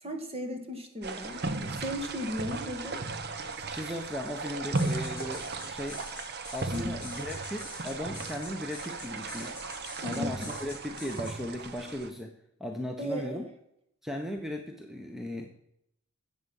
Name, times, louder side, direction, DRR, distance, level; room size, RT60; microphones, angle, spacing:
voice 1, 0.0-3.0 6.7-7.0 10.0-10.5 13.0-13.4, left 1 dB, 30° right, 5 dB, 1.8 m, -36 dB
sound 1, 1.0-12.1, right 3 dB, 50° right, 1.0 m, -36 dB
voice 2, 3.7-6.0 6.5-9.6 10.0-13.5 14.0-15.6, left 1 dB, ahead, 3 dB, 0.9 m, -37 dB
sound 2, 4.7-11.4, left 4 dB, 25° left, 3.9 m, -46 dB
13.5 x 8.3 x 5.5 m, 0.78 s
head